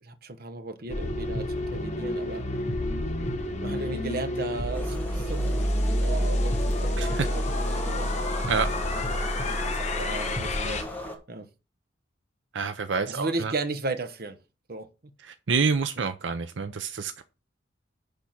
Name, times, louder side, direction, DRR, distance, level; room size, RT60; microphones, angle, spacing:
voice 1, 0.0-2.4 3.6-5.6 6.0-8.2 8.9-10.9 11.3-11.5 13.1-14.4 14.7-14.9, right 3 dB, 50° right, 1.0 m, -35 dB
sound 1, 0.9-10.8, left 1 dB, 35° left, 1.3 m, -28 dB
sound 2, 4.7-11.2, equal, 10° left, 1.5 m, -38 dB
voice 2, 12.5-13.5 15.2-17.2, right 5 dB, 75° right, 0.6 m, -28 dB
10.5 x 3.6 x 6.0 m
head